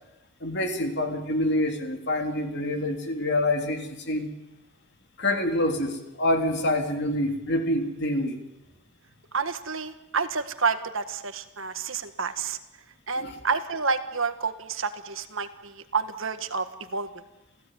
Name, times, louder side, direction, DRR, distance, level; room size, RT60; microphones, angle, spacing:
voice 1, 0.4-4.3 5.2-8.4 13.2-13.3, left 1 dB, 50° left, 5 dB, 3.2 m, -26 dB
voice 2, 9.3-12.6 13.1-17.1, right 5 dB, 60° right, 9 dB, 1.6 m, -29 dB
28.5 x 16.0 x 9.3 m, 0.99 s
head